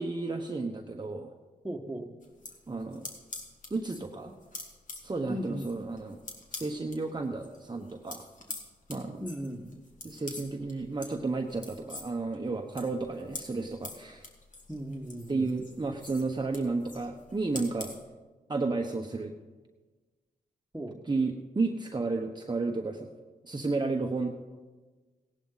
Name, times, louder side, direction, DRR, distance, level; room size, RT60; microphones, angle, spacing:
voice 1, 0.0-1.3 2.7-3.1 3.7-4.3 5.0-6.2 6.5-8.3 8.9-9.2 10.0-14.3 15.3-17.9 18.5-19.3 21.1-23.1 23.4-24.4, right 3 dB, 25° right, 2 dB, 1.1 m, -32 dB
voice 2, 1.6-2.1 5.3-5.7 9.2-9.7 14.7-15.5 20.7-21.0, equal, 5° right, 2 dB, 1.7 m, -37 dB
sound 1, 2.2-7.0 7.3-18.0, left 2 dB, 50° left, 2.5 m, -45 dB
16.5 x 11.0 x 4.0 m, 1.3 s
supercardioid pair, 50°, 17 cm